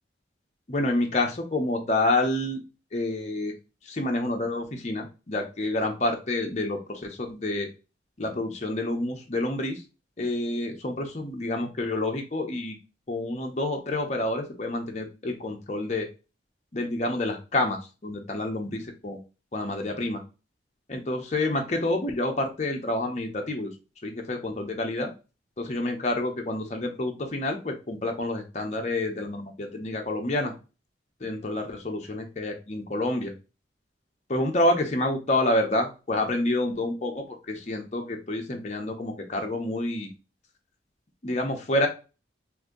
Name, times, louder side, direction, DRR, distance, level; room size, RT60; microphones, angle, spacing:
voice 1, 0.7-2.6 2.9-3.5 3.9-7.7 8.2-9.8 10.2-12.8 13.1-16.1 16.7-19.2 19.5-20.2 20.9-23.7 24.0-25.1 25.6-30.5 31.2-33.3 34.3-40.1 41.2-41.9, left 2 dB, 35° left, 2 dB, 0.7 m, -28 dB
2.7 x 2.6 x 3.6 m, 0.31 s
head